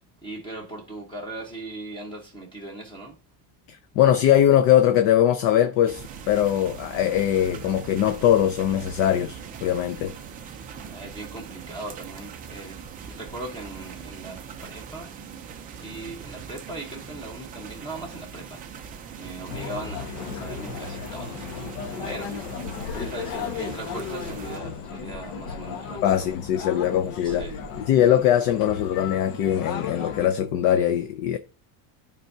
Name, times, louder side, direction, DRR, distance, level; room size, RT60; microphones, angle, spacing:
voice 1, 0.2-3.1 10.9-15.1 15.7-18.6 19.2-21.5 22.0-22.3 22.9-26.4 27.2-27.6, right 2 dB, 10° left, 1.1 m, -39 dB
voice 2, 3.7-10.1 26.0-27.5 27.9-31.4, left 11 dB, 40° left, 0.5 m, -21 dB
sound 1, 5.9-24.6, right 7 dB, 20° right, 0.4 m, -41 dB
sound 2, 19.5-30.3, left 6 dB, 60° left, 1.4 m, -35 dB
11.5 x 4.6 x 2.7 m
cardioid pair, 175°, 49 cm